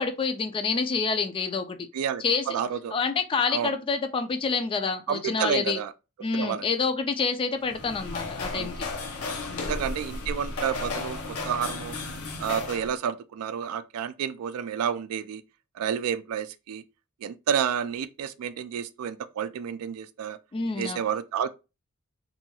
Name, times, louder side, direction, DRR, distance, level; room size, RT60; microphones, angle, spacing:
voice 1, 0.0-1.8 2.2-2.4 2.9-5.8 6.2-8.7 9.5-9.8 20.5-21.0, left 4 dB, 25° left, 0.3 m, -27 dB
voice 2, 1.9-2.9 3.5-3.7 5.1-5.9 6.3-6.7 8.5-8.7 9.6-12.0 12.4-15.4 15.8-16.8 17.2-20.4 20.8-21.5, right 8 dB, 80° right, 0.3 m, -30 dB
sound 1, 7.6-12.9, left 3 dB, 85° left, 0.6 m, -34 dB
2.7 x 2.3 x 2.8 m
head